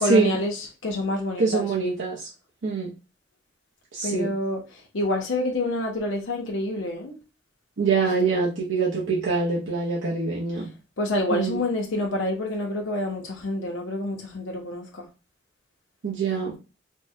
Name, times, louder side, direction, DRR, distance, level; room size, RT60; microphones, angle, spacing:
voice 1, 0.0-1.7 4.0-7.1 8.2-8.3 11.0-15.1, left 1 dB, 85° left, -1 dB, 0.6 m, -27 dB
voice 2, 1.4-2.3 2.6-2.9 3.9-4.3 7.8-10.7 11.3-11.6 16.0-16.5, right 4 dB, 80° right, -4 dB, 0.6 m, -24 dB
3.5 x 2.1 x 2.6 m, 0.31 s
head